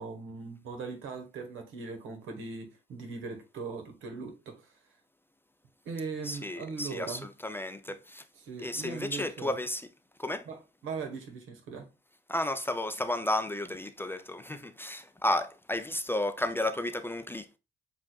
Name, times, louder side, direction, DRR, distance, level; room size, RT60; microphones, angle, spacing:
voice 1, 0.0-4.7 5.8-7.3 8.4-9.6 10.4-11.9, right 4 dB, 80° right, 1.4 m, -40 dB
voice 2, 6.2-8.2 8.6-9.9 10.2-10.5 12.3-17.6, left 1 dB, 10° left, 0.4 m, -33 dB
7.4 x 2.5 x 2.3 m
cardioid pair, 90°, 20 cm